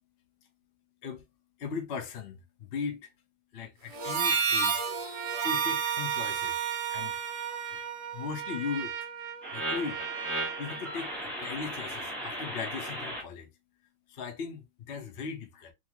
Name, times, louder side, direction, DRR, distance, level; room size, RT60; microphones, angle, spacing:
voice 1, 1.6-3.1 3.5-4.9 5.4-6.6 6.9-7.2 8.1-8.9 9.5-10.0 10.6-11.1 11.4-13.5 14.1-15.7, left 5 dB, 70° left, 0.6 m, -38 dB
Harmonica, 3.9-8.5, right 6 dB, 60° right, 0.9 m, -31 dB
Trumpet, 5.0-11.6, right 9 dB, 80° right, 1.3 m, -38 dB
sound 1, 9.4-13.2, right 1 dB, ahead, 0.5 m, -36 dB
3.0 x 2.8 x 2.8 m
omnidirectional pair, 2.2 m